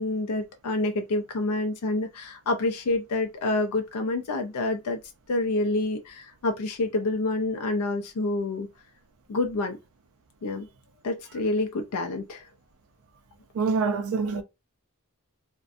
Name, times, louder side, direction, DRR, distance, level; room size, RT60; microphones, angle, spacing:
voice 1, 0.0-5.0 5.3-8.7 9.3-9.8 10.4-10.7 11.0-12.4, left 2 dB, 85° left, 0.4 m, -28 dB
voice 2, 13.5-14.4, right 4 dB, 65° right, 0.4 m, -25 dB
2.5 x 2.1 x 2.5 m
head